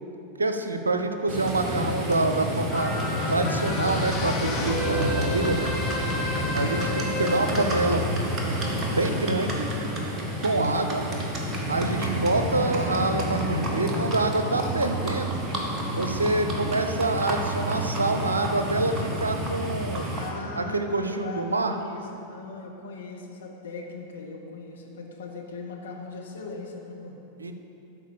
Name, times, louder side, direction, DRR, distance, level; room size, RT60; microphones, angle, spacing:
voice 1, 0.4-2.9 3.3-5.6 6.5-8.0 8.9-9.7 10.4-11.0 11.7-15.4 15.9-20.1 20.6-21.8 27.4-27.5, right 2 dB, 75° right, 7 dB, 0.7 m, -26 dB
Livestock farm animals working animals, 1.3-20.3, equal, 20° right, 1.6 m, -29 dB
sound 1, 2.7-9.3 9.8-9.9, left 2 dB, 25° left, 1.5 m, -32 dB
voice 2, 6.4-6.8 20.1-27.2, left 3 dB, 65° left, 0 dB, 1.4 m, -39 dB
12.0 x 4.7 x 7.1 m, 2.9 s
figure-of-eight pair, 90°, 0 cm